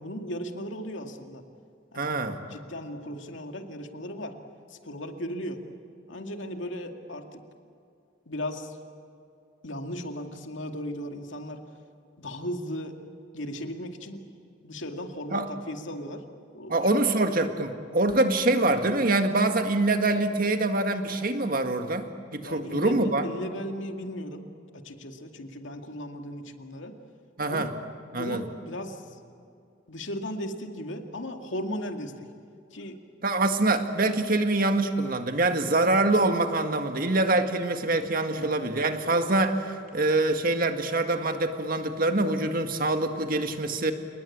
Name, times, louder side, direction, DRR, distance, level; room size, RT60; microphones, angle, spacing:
voice 1, 0.0-1.4 1.9-2.1 2.4-4.4 4.7-5.6 6.1-7.3 8.3-8.7 9.6-11.6 12.2-13.0 13.3-14.3 14.6-16.2 16.5-17.0 22.4-26.9 27.5-27.7 28.1-29.0 29.9-32.3 32.7-33.0 38.3-38.5, equal, 85° left, 5 dB, 2.3 m, -36 dB
voice 2, 2.0-2.4 15.3-15.5 16.7-23.3 27.4-27.7 28.1-28.5 33.2-43.9, right 2 dB, 50° right, 6 dB, 1.9 m, -25 dB
29.5 x 19.5 x 8.7 m, 2.5 s
head